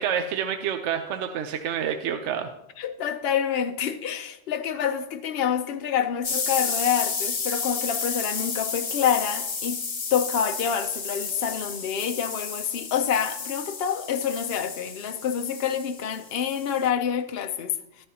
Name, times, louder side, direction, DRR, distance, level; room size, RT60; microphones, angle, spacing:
voice 1, 0.0-2.5, right 8 dB, 70° right, 0.9 m, -28 dB
voice 2, 2.8-9.8 10.1-18.1, left 8 dB, 60° left, 0.8 m, -27 dB
sound 1, 6.2-16.9, left 5 dB, 40° left, 0.4 m, -32 dB
11.5 x 10.0 x 2.8 m
omnidirectional pair, 1.3 m